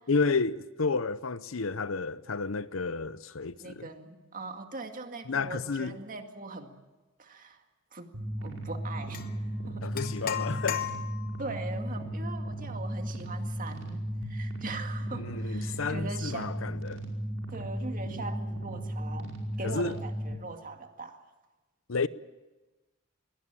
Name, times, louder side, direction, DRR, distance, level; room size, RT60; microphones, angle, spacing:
voice 1, 0.1-3.9 5.3-6.0 9.8-10.9 15.1-17.0 19.6-19.9 21.9-22.1, left 4 dB, 80° left, 0.8 m, -31 dB
voice 2, 3.6-6.7 7.2-7.6 7.9-8.1 8.4-9.3 9.7-9.9 11.4-16.6 17.5-21.3, right 3 dB, 45° right, 2.1 m, -41 dB
sound 1, 8.1-20.3, right 1 dB, 85° right, 5.2 m, -35 dB
sound 2, 9.1-9.3 9.9-11.4, left 9 dB, 45° left, 1.1 m, -35 dB
22.5 x 18.0 x 8.9 m
head